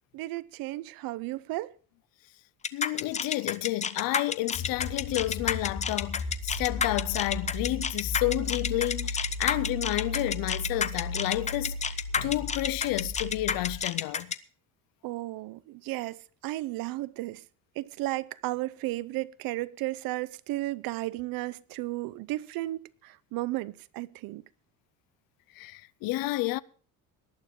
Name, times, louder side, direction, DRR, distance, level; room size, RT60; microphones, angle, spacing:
voice 1, 0.1-1.7 15.0-17.4 17.8-24.4, right 18 dB, 80° right, 0.7 m, -34 dB
sound 1, 2.6-14.3, left 6 dB, 20° left, 0.6 m, -30 dB
voice 2, 2.7-14.3 25.6-26.6, left 18 dB, 75° left, 0.7 m, -30 dB
sound 2, 4.5-13.7, left 2 dB, 50° left, 5.9 m, -36 dB
18.5 x 11.5 x 3.7 m
cardioid pair, 155°, 34 cm